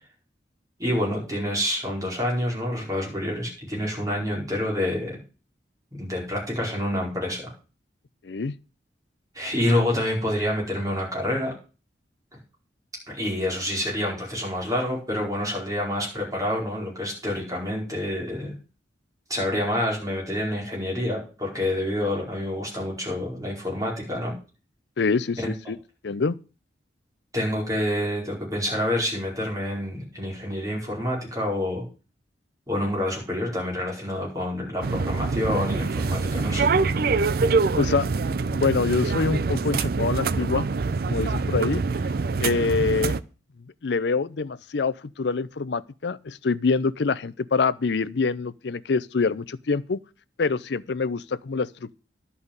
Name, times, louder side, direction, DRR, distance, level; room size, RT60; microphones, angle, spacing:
voice 1, 0.8-5.2 5.9-7.5 9.3-11.5 13.1-18.5 19.3-24.3 25.4-25.7 27.3-31.9 32.7-36.7, left 1 dB, 20° right, 4.8 m, -27 dB
voice 2, 8.2-8.6 25.0-25.8 26.0-26.4 37.8-38.1 38.5-40.7 41.0-41.8 42.4-43.2 43.8-50.0 50.4-51.9, left 4 dB, 65° left, 0.5 m, -25 dB
sound 1, 34.8-43.2, right 4 dB, 55° right, 0.5 m, -25 dB
11.0 x 5.6 x 8.1 m
head